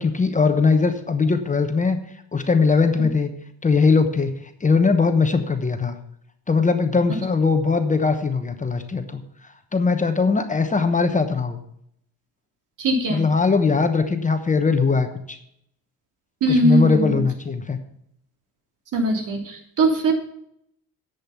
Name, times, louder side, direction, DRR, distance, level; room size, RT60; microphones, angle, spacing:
voice 1, 0.0-2.0 2.3-3.3 3.6-6.0 6.5-11.6 13.1-15.4 16.5-17.8, left 4 dB, 20° left, 7 dB, 1.0 m, -20 dB
voice 2, 12.8-13.2 16.4-17.2 18.9-20.1, right 1 dB, 55° right, 3 dB, 3.2 m, -20 dB
10.5 x 8.1 x 5.8 m, 0.73 s
cardioid pair, 125°, 36 cm